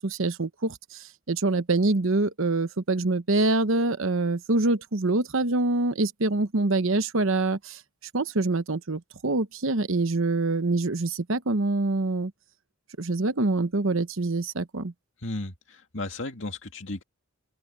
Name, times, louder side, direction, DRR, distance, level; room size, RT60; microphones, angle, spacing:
voice 1, 0.0-7.8 8.1-12.3 13.0-14.9, right 2 dB, 65° right, 1.0 m, -25 dB
voice 2, 15.2-17.0, left 2 dB, 60° left, 2.5 m, -34 dB
open air
head